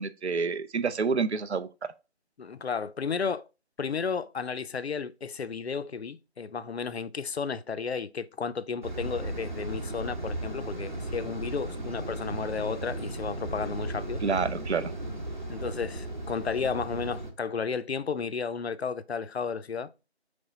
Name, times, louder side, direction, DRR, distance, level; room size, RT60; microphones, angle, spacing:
voice 1, 0.0-1.7 14.2-14.9, right 5 dB, 75° right, 0.6 m, -28 dB
voice 2, 2.4-3.5 3.8-14.2 15.5-19.9, left 5 dB, 70° left, 0.5 m, -33 dB
sound 1, 8.8-17.3, right 1 dB, 45° right, 0.9 m, -35 dB
3.5 x 3.3 x 3.8 m
figure-of-eight pair, 175°, 34 cm